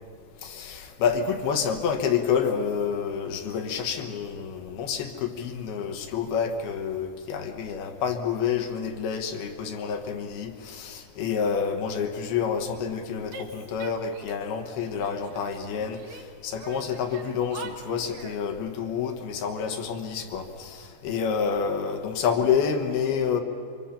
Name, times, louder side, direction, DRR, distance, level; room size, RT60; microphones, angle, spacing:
voice 1, 0.4-16.0 16.4-23.4, left 6 dB, 70° left, 5 dB, 2.7 m, -28 dB
Female speech woman speaking / Yell, 13.3-14.5 14.8-16.3 16.6-18.4, right 5 dB, 60° right, 2.5 m, -43 dB
26.5 x 24.5 x 5.8 m, 2.2 s
omnidirectional pair, 5.7 m